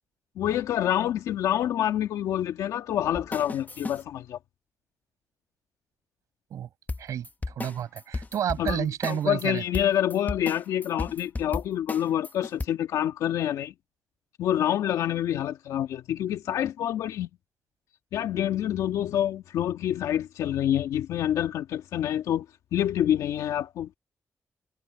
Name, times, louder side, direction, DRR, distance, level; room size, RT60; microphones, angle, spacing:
voice 1, 0.4-4.4 8.6-13.7 14.4-17.3 18.1-22.5 22.7-24.0, left 11 dB, 85° left, 1.8 m, -27 dB
sound 1, 3.1-4.0 6.9-9.5 9.7-12.7, left 3 dB, 30° left, 1.3 m, -34 dB
voice 2, 7.0-9.6, right 10 dB, 80° right, 5.7 m, -30 dB
supercardioid pair, 45°, 6 cm